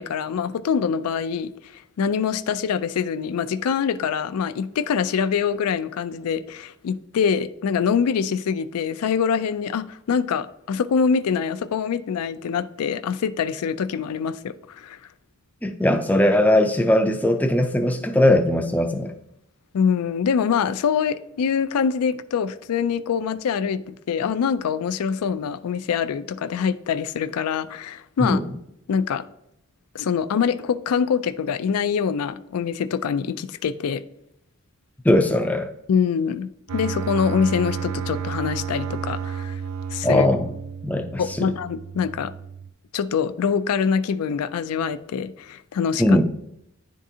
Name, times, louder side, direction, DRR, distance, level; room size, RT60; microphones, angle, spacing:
voice 1, 0.0-15.0 19.7-28.4 28.9-29.2 29.9-34.0 35.9-39.6 39.9-40.3 41.2-42.3 42.9-46.2, left 6 dB, 90° left, 0.4 m, -24 dB
voice 2, 15.6-19.1 28.2-28.4 35.0-35.7 40.0-40.5 40.8-41.5 46.0-46.2, left 1 dB, 5° left, 0.4 m, -19 dB
sound 1, 36.7-42.7, right 7 dB, 75° right, 0.4 m, -32 dB
10.0 x 3.7 x 2.7 m
head